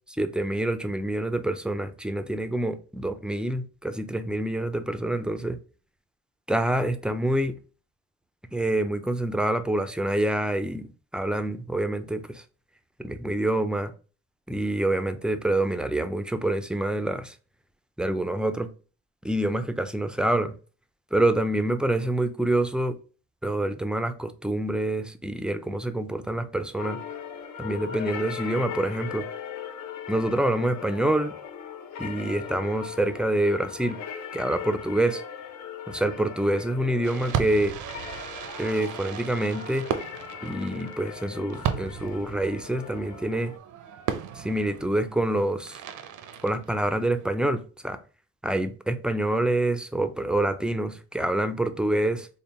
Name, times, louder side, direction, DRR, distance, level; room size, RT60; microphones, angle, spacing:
voice 1, 0.2-5.6 6.5-7.6 8.5-12.4 13.0-13.9 14.5-17.3 18.0-18.7 19.2-20.5 21.1-23.0 23.4-27.0 27.6-29.3 30.1-31.3 32.0-34.0 34.3-35.2 35.9-37.7 38.6-39.9 40.4-43.5 44.4-45.8 46.4-48.0 48.4-52.3, right 1 dB, 5° right, 0.4 m, -26 dB
sound 1, 26.8-43.6, left 8 dB, 70° left, 0.7 m, -39 dB
Fireworks, 37.0-47.3, right 8 dB, 75° right, 0.6 m, -36 dB
3.5 x 2.1 x 4.1 m
cardioid pair, 90°, 30 cm